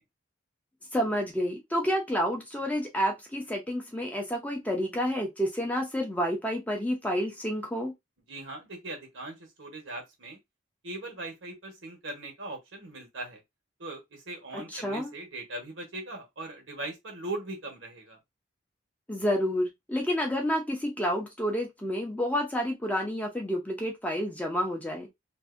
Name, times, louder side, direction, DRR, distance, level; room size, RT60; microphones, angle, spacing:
voice 1, 0.9-7.9 14.5-15.1 19.1-25.1, equal, 10° left, 0.5 m, -29 dB
voice 2, 8.3-10.4 10.8-13.4 13.8-18.2, right 2 dB, 80° right, 1.2 m, -40 dB
2.6 x 2.6 x 2.5 m
head